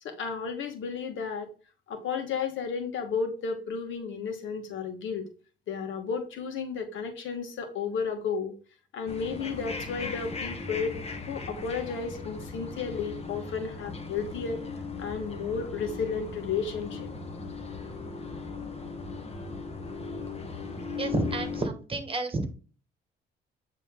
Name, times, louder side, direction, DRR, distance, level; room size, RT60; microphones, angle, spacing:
voice 1, 0.0-1.5 1.9-5.2 5.7-8.5 8.9-11.0 11.3-14.6 15.0-17.1, left 5 dB, 75° left, 5 dB, 1.7 m, -33 dB
sound 1, 9.1-21.7, left 4 dB, 30° left, 1.4 m, -38 dB
voice 2, 21.0-22.5, right 3 dB, 25° right, 6 dB, 1.8 m, -30 dB
8.5 x 4.1 x 3.8 m, 0.36 s
cardioid pair, 90°, 20 cm